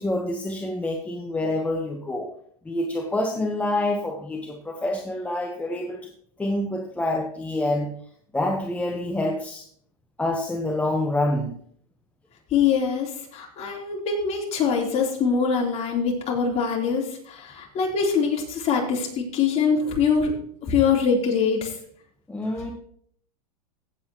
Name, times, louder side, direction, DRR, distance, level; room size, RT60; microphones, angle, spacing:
voice 1, 0.0-2.3 2.6-6.0 6.4-7.9 8.3-9.6 10.2-11.5 22.3-22.7, left 1 dB, 5° left, 1 dB, 1.1 m, -27 dB
voice 2, 12.5-20.3 20.7-21.7, left 6 dB, 35° left, -1 dB, 3.6 m, -23 dB
16.0 x 8.1 x 3.0 m, 0.63 s
supercardioid pair, 130°, 20 cm